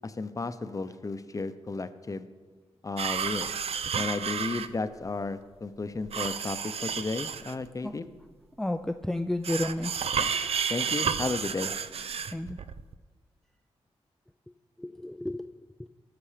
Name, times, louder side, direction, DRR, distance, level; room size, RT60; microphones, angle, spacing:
voice 1, 0.0-2.3 2.8-3.5 4.0-8.1 10.2-10.3 10.7-11.7, left 3 dB, 30° left, 11 dB, 0.7 m, -33 dB
sound 1, 3.0-4.7 6.1-7.7 9.4-12.9, right 7 dB, 65° right, 0.5 m, -31 dB
voice 2, 8.6-9.9 12.3-12.6 14.8-15.5, left 1 dB, 5° left, 7 dB, 0.4 m, -31 dB
17.0 x 6.0 x 5.0 m, 1.4 s
cardioid pair, 70°, 11 cm